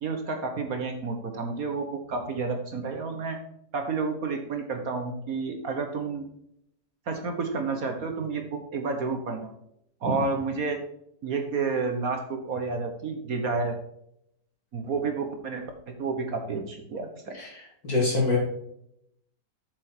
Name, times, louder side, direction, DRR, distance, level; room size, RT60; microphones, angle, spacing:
voice 1, 0.0-3.4 3.7-6.2 7.1-8.5 8.7-9.5 10.0-10.8 11.2-13.8 14.7-15.6 16.0-17.4, right 4 dB, 55° right, 5 dB, 1.5 m, -30 dB
voice 2, 17.3-18.4, left 3 dB, 55° left, -3 dB, 3.9 m, -26 dB
7.9 x 7.0 x 4.5 m, 0.74 s
omnidirectional pair, 1.9 m